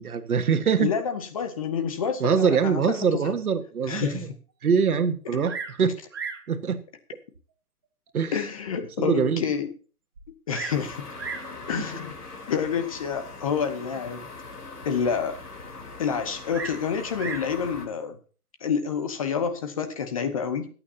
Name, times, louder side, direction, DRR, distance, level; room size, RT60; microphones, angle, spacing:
voice 1, 0.0-0.9 2.2-4.3 4.6-5.9 6.5-6.8 8.1-8.4 9.0-9.4 11.8-11.9, right 6 dB, 70° right, 7 dB, 1.7 m, -23 dB
voice 2, 0.8-2.8 3.2-3.3 3.9-4.4 8.3-9.7 10.5-11.1 11.7-12.1 12.5-14.3 14.8-15.4 16.0-18.2 18.6-20.7, left 7 dB, 25° left, 8 dB, 0.8 m, -28 dB
Bird vocalization bird call bird song, 5.4-5.8 6.1-6.5 7.3-7.4 8.1-8.2 8.7-8.8 9.0-9.1 10.1-10.8 11.2-11.5 12.5-12.9 16.5-17.5 18.6-19.0, right 5 dB, 15° right, 0.6 m, -36 dB
sound 1, 10.7-17.9, left 3 dB, 85° left, 3.9 m, -41 dB
24.0 x 8.9 x 2.8 m, 0.38 s
hypercardioid pair, 155°, 45 cm